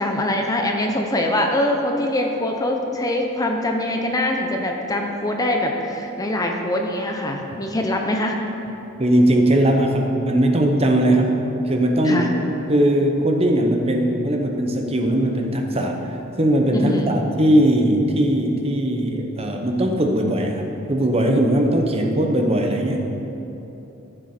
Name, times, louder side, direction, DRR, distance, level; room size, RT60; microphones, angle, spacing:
voice 1, 0.0-8.4 12.0-12.3 16.7-17.1, left 1 dB, 15° left, 2 dB, 0.7 m, -23 dB
voice 2, 9.0-12.3 12.7-23.0, right 1 dB, 30° right, 2 dB, 0.9 m, -19 dB
14.0 x 7.5 x 4.4 m, 3.0 s
head